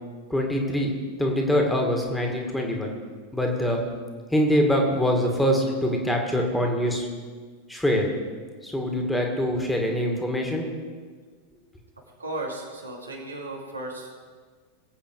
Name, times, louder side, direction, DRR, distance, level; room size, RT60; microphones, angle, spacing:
voice 1, 0.3-0.9 1.2-2.9 3.3-3.8 4.3-7.1 7.7-8.1 8.6-10.6, equal, 5° left, 1 dB, 2.4 m, -24 dB
voice 2, 12.2-14.1, right 2 dB, 80° right, -1 dB, 2.7 m, -35 dB
21.5 x 8.5 x 4.9 m, 1.5 s
figure-of-eight pair, 90°, 0 cm